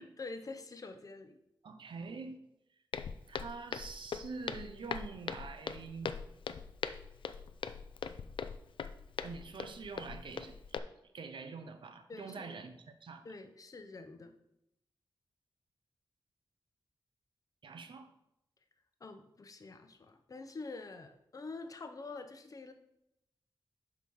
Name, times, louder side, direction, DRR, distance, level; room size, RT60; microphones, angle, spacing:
voice 1, 0.0-1.4 12.1-12.5 13.2-14.3 19.0-22.7, left 3 dB, 45° left, 8 dB, 0.7 m, -46 dB
voice 2, 1.6-2.4 3.3-6.2 9.2-10.8 11.1-13.3 17.6-18.1, right 4 dB, 75° right, 8 dB, 0.7 m, -45 dB
Walk footsteps, 2.9-10.8, left 6 dB, 90° left, 0.4 m, -41 dB
6.2 x 4.9 x 5.4 m, 0.82 s
wide cardioid pair, 150°, 8 cm